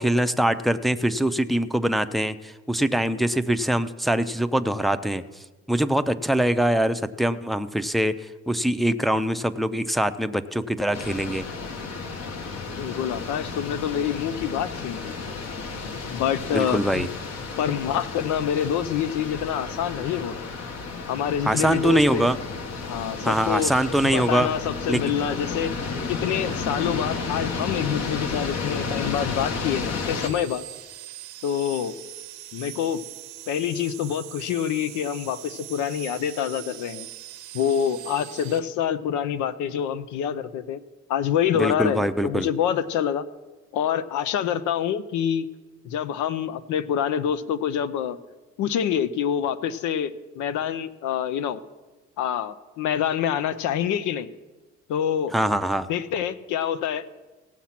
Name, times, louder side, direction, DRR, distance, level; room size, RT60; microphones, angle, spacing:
voice 1, 0.0-5.2 5.7-11.4 16.5-17.1 21.5-22.4 23.2-24.5 24.9-25.0 41.5-42.5 55.3-55.9, right 1 dB, ahead, 8 dB, 0.5 m, -23 dB
sound 1, 10.9-30.3, left 4 dB, 65° left, 1.5 m, -32 dB
voice 2, 12.8-15.2 16.1-17.1 17.6-20.4 21.1-22.3 22.8-23.7 24.0-25.7 26.1-30.6 31.4-31.9 32.5-33.0 33.5-37.1 37.5-40.8 41.1-43.2 43.7-45.5 45.8-48.2 48.6-51.6 52.2-54.3 54.9-55.3 55.9-57.0, left 9 dB, 85° left, 14 dB, 0.7 m, -26 dB
sound 2, 30.2-38.6, right 13 dB, 85° right, 0.9 m, -42 dB
17.5 x 7.3 x 5.8 m, 1.2 s
cardioid pair, 110°, 29 cm